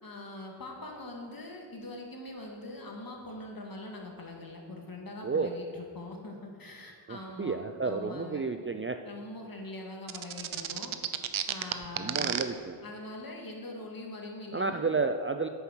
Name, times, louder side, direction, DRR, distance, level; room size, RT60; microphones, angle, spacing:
voice 1, 0.0-8.5 9.0-10.9 11.5-12.4 12.8-14.9, left 2 dB, 45° left, 0 dB, 2.1 m, -43 dB
voice 2, 7.1-9.0 12.0-12.8 14.5-15.5, right 4 dB, 25° right, 7 dB, 0.5 m, -31 dB
sound 1, 10.1-12.4, right 10 dB, 70° right, 0.7 m, -31 dB
8.9 x 6.9 x 6.4 m, 2.2 s
cardioid pair, 55°, 49 cm